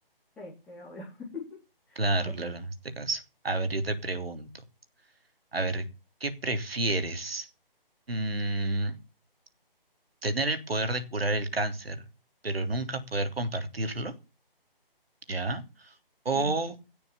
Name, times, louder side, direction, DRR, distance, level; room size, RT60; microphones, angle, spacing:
voice 1, 0.4-1.6 1.9-2.5 16.3-16.6, left 3 dB, 5° left, -8 dB, 2.2 m, -43 dB
voice 2, 1.9-4.5 5.5-5.9 6.2-7.5 8.1-9.0 10.2-12.0 12.4-14.1 15.3-15.9 16.2-16.8, right 2 dB, 85° right, 9 dB, 3.2 m, -30 dB
17.0 x 7.0 x 7.3 m, 0.32 s
hypercardioid pair, 170°, 29 cm